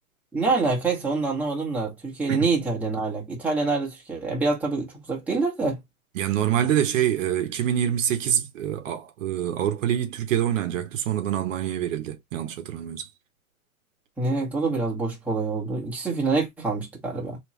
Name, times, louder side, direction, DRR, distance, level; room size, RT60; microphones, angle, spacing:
voice 1, 0.3-5.8 14.2-17.4, right 3 dB, 5° right, 1.1 m, -26 dB
voice 2, 6.2-13.1, right 10 dB, 60° right, 0.9 m, -25 dB
3.3 x 2.9 x 3.0 m
hypercardioid pair, 135°, 43 cm